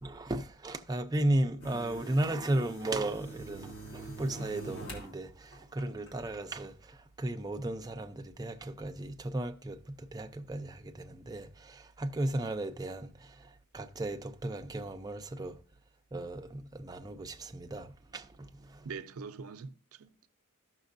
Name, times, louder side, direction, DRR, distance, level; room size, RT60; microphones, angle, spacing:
voice 1, 0.0-6.7 7.2-9.8 10.1-13.1 13.7-15.6 16.1-18.2, right 1 dB, 20° right, 0.5 m, -35 dB
sound 1, 1.6-5.1 5.5-6.3, right 2 dB, 70° left, 2.3 m, -46 dB
voice 2, 18.8-20.3, right 5 dB, 85° right, 0.5 m, -43 dB
14.0 x 6.1 x 2.6 m
head